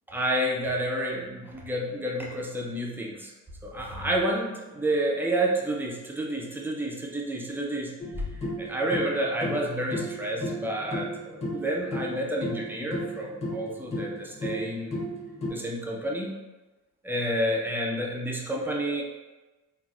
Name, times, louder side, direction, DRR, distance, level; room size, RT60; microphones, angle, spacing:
voice 1, 0.1-3.3 3.6-8.3 8.6-15.0 15.5-16.3 17.0-19.0, right 1 dB, 5° right, -2 dB, 0.5 m, -30 dB
sound 1, 8.0-15.5, equal, 20° left, 0.8 m, -34 dB
4.1 x 2.0 x 2.4 m, 1.1 s
cardioid pair, 90°, 30 cm